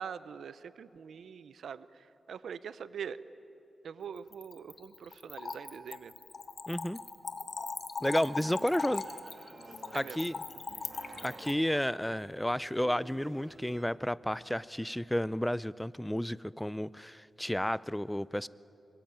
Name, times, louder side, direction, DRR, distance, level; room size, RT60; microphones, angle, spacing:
voice 1, 0.0-1.9 2.3-3.2 3.8-6.1 9.9-10.2, right 7 dB, 85° right, 15 dB, 0.8 m, -43 dB
Splash splatter / Trickle dribble, 4.2-11.5, left 4 dB, 55° left, 1.6 m, -40 dB
voice 2, 6.7-7.0 8.0-9.0 9.9-10.4 11.2-18.5, equal, 5° left, 19 dB, 0.5 m, -32 dB
sound 1, 8.2-13.8, right 3 dB, 55° right, 2.2 m, -52 dB
25.0 x 21.5 x 9.1 m, 3.0 s
cardioid pair, 85°, 0 cm